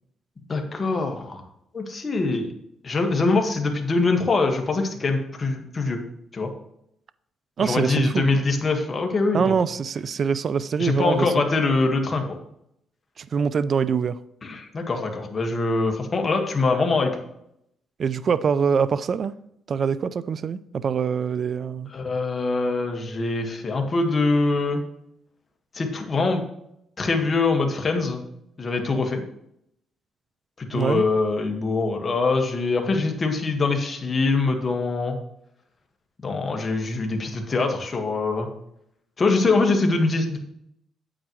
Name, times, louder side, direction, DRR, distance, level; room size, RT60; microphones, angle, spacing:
voice 1, 0.5-1.4 1.7-2.5 2.8-6.0 6.3-6.5 7.6-9.5 10.8-12.2 14.4-17.1 21.9-24.8 25.7-26.4 27.0-28.2 28.6-29.2 30.6-35.2 36.2-38.5 39.2-40.4, left 3 dB, 35° left, 1.7 m, -23 dB
voice 2, 7.6-8.2 9.3-11.3 13.2-14.2 18.0-19.3 19.7-21.9 30.7-31.0, right 6 dB, 50° right, 0.4 m, -24 dB
8.8 x 8.7 x 3.2 m
cardioid pair, 90°, 0 cm